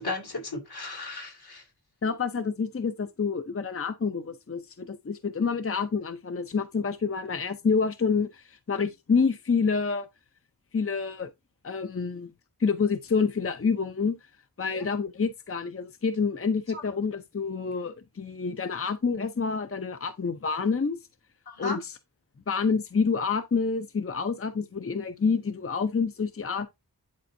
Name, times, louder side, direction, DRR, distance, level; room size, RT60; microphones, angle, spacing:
voice 1, 0.0-1.6 14.7-14.8 16.7-16.8 21.5-21.8, left 3 dB, 80° left, 2.3 m, -35 dB
voice 2, 2.0-10.1 10.7-11.3 11.6-12.3 12.6-14.2 14.6-21.0 21.6-22.0 22.5-26.7, left 5 dB, 35° left, 0.6 m, -28 dB
10.5 x 4.2 x 2.7 m
wide cardioid pair, 60°, 38 cm